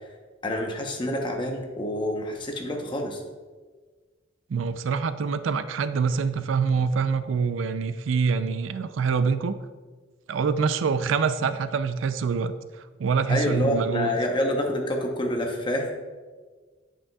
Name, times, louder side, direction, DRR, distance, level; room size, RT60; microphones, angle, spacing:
voice 1, 0.4-3.2 13.3-15.9, left 1 dB, 25° left, 2 dB, 0.9 m, -27 dB
voice 2, 4.5-9.6 10.3-14.1, right 5 dB, 85° right, 12 dB, 0.4 m, -25 dB
8.5 x 8.1 x 2.3 m, 1.4 s
head